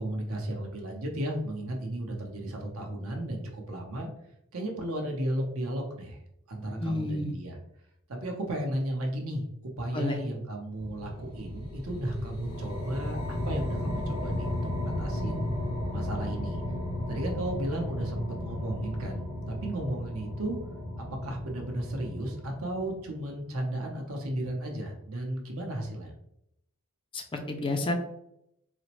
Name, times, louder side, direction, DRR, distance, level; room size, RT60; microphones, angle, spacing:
voice 1, 0.0-4.1 4.5-6.2 6.5-7.6 8.1-9.4 9.8-15.5 15.9-16.6 17.1-20.6 21.0-26.1, right 1 dB, 65° right, 1 dB, 0.8 m, -34 dB
voice 2, 6.8-7.3 9.9-10.2 27.1-27.9, left 2 dB, 25° left, 4 dB, 0.3 m, -30 dB
sound 1, 10.8-23.3, left 1 dB, 90° left, 1.3 m, -34 dB
4.1 x 2.0 x 2.9 m, 0.78 s
head